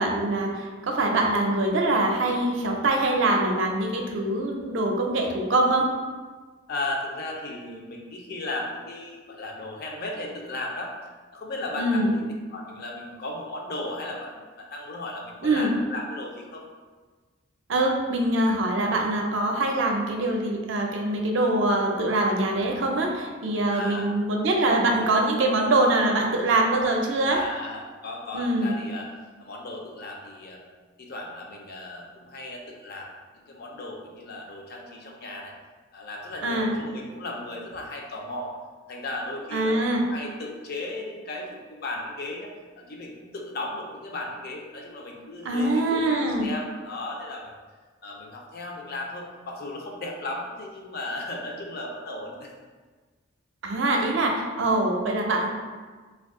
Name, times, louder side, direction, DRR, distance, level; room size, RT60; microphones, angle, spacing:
voice 1, 0.0-5.9 11.8-12.2 15.4-15.7 17.7-27.4 28.3-28.7 36.4-36.7 39.5-40.0 45.4-46.5 53.6-55.5, right 2 dB, 65° right, 1 dB, 0.4 m, -24 dB
voice 2, 6.7-10.9 11.3-16.7 23.7-24.1 27.3-30.6 31.0-35.5 35.9-38.5 38.9-47.5 48.0-52.5, left 2 dB, 50° left, 0 dB, 0.5 m, -36 dB
2.6 x 2.3 x 3.6 m, 1.4 s
head